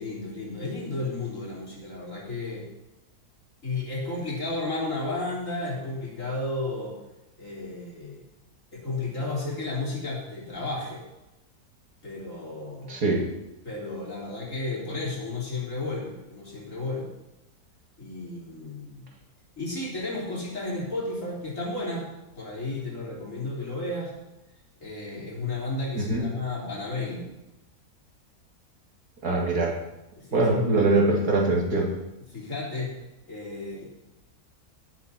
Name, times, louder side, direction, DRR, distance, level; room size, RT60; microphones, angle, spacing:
voice 1, 0.0-2.7 3.6-7.0 7.4-8.2 8.7-11.0 12.0-12.9 13.6-17.1 18.0-19.1 19.6-22.1 22.4-24.1 24.8-27.3 30.2-30.5 32.3-32.9 33.3-33.8, left 2 dB, 55° left, -4 dB, 4.0 m, -33 dB
voice 2, 12.9-13.2 25.9-26.3 29.2-29.7 30.3-31.9, right 2 dB, 85° right, 0 dB, 2.8 m, -23 dB
17.0 x 7.9 x 4.3 m, 0.96 s
omnidirectional pair, 1.6 m